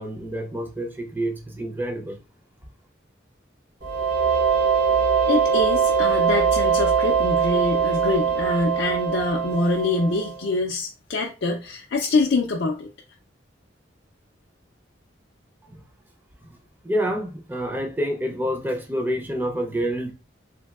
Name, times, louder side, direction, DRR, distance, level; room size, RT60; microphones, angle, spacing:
voice 1, 0.0-2.2 15.7-15.8 16.8-20.1, equal, 10° right, 0.4 m, -28 dB
sound 1, 3.8-10.4, right 6 dB, 70° right, 1.3 m, -22 dB
voice 2, 5.3-12.9, left 2 dB, 65° left, 0.4 m, -25 dB
3.2 x 2.6 x 2.3 m
head